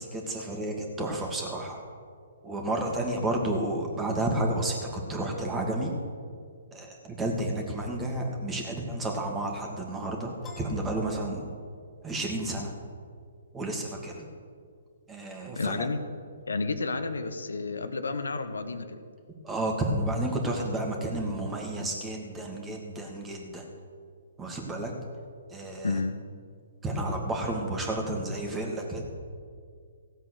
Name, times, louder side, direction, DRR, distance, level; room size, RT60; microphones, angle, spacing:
voice 1, 0.0-1.8 2.4-5.9 6.7-11.4 12.0-12.7 13.5-14.2 15.1-15.8 19.4-23.6 24.4-24.9 25.5-25.9 26.8-29.0, right 1 dB, 15° right, 1 dB, 2.3 m, -31 dB
Piano, 10.4-12.0, left 2 dB, 10° left, 2.9 m, -49 dB
voice 2, 15.6-16.0 16.5-19.0 25.8-26.1, left 3 dB, 80° left, 8 dB, 1.1 m, -31 dB
16.0 x 8.1 x 6.5 m, 2.1 s
figure-of-eight pair, 130°, 0 cm